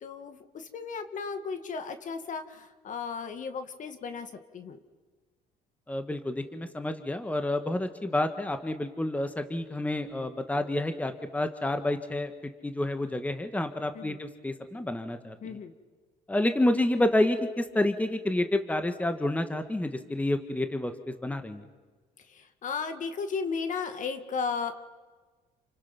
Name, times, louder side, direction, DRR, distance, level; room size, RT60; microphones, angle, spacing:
voice 1, 0.0-4.8 13.9-14.2 15.4-15.7 22.3-24.7, left 5 dB, 50° left, 8 dB, 2.1 m, -35 dB
voice 2, 5.9-12.3 12.6-15.6 16.3-21.6, left 1 dB, 10° left, 8 dB, 1.7 m, -29 dB
29.5 x 27.5 x 6.1 m, 1.4 s
cardioid pair, 110°, 17 cm